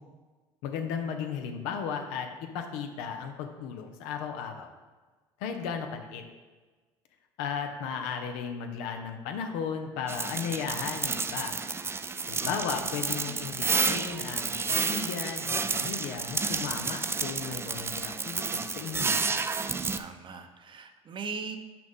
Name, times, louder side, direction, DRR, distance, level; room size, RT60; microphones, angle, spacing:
voice 1, 0.6-4.7 5.4-6.2 7.4-11.6 12.3-19.5, left 6 dB, 75° left, 5 dB, 0.9 m, -35 dB
sound 1, 10.1-20.0, right 4 dB, 20° right, 0.4 m, -31 dB
voice 2, 19.9-21.6, right 5 dB, 40° right, 7 dB, 0.8 m, -39 dB
6.2 x 6.0 x 3.7 m, 1.3 s
supercardioid pair, 75°, 13 cm